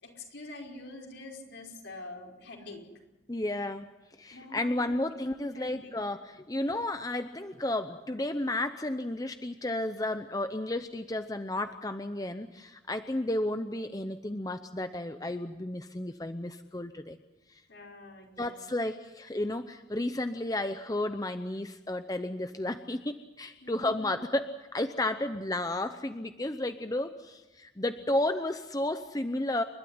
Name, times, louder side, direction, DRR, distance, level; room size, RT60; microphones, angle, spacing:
voice 1, 0.0-2.8 4.3-5.0 5.4-6.0 17.7-18.5 23.6-24.0, left 2 dB, 70° left, 0 dB, 5.2 m, -46 dB
voice 2, 3.3-3.9 4.2-17.2 17.5-17.6 18.4-29.6, left 1 dB, 20° left, 8 dB, 0.7 m, -32 dB
29.0 x 12.5 x 9.8 m, 1.1 s
head